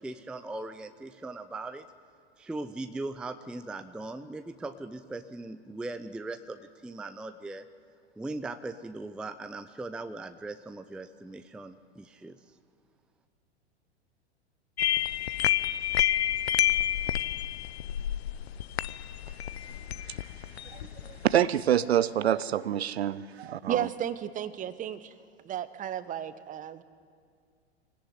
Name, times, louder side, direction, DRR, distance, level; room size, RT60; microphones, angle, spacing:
voice 1, 0.0-1.9 2.4-7.7 8.2-12.4, right 2 dB, 5° right, 9 dB, 0.5 m, -39 dB
sound 1, 14.8-21.4, left 12 dB, 65° left, 0.7 m, -29 dB
voice 2, 21.1-23.8, right 10 dB, 65° right, 16 dB, 0.7 m, -26 dB
voice 3, 23.7-25.1 25.4-26.8, right 10 dB, 25° right, 13 dB, 1.1 m, -33 dB
23.5 x 18.0 x 9.9 m, 2.1 s
figure-of-eight pair, 90°, 34 cm